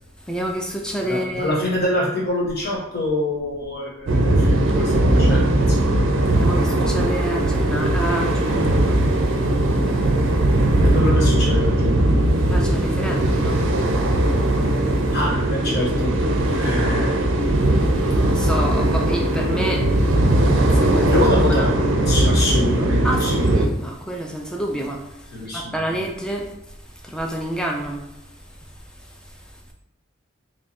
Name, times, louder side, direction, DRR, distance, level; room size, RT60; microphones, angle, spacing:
voice 1, 0.3-1.6 6.3-9.0 9.4-9.6 10.9-11.0 12.5-13.7 18.0-19.9 20.7-21.3 21.6-21.7 23.0-25.0 25.5-26.5 27.0-28.0, right 1 dB, 5° left, 1 dB, 0.4 m, -28 dB
voice 2, 1.0-5.4 5.7-5.9 10.8-12.1 15.1-16.2 16.6-17.2 21.1-21.8 22.1-23.5 25.3-26.0, left 1 dB, 50° left, -4 dB, 1.2 m, -25 dB
sound 1, 4.1-23.7, right 1 dB, 65° right, 0.5 m, -19 dB
3.1 x 2.4 x 4.2 m, 0.85 s
head